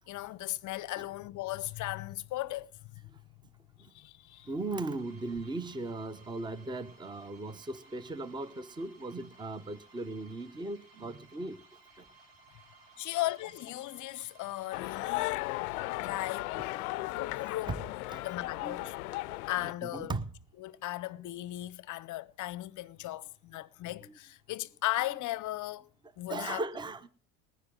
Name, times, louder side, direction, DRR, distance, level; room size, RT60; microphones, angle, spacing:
voice 1, 0.1-2.7 3.9-4.5 13.0-15.4 16.0-16.8 17.1-18.0 18.2-18.9 19.5-20.1 20.6-25.9 26.2-26.6, left 16 dB, 45° left, 0.7 m, -37 dB
sound 1, 4.2-16.0, right 3 dB, 65° right, 4.1 m, -60 dB
voice 2, 4.5-11.5 17.7-17.8 18.1-18.9 19.8-20.3 26.3-27.1, right 2 dB, 10° right, 0.8 m, -38 dB
sound 2, 14.7-19.7, left 20 dB, 75° left, 0.5 m, -36 dB
19.5 x 9.8 x 3.8 m
hypercardioid pair, 85°, 44 cm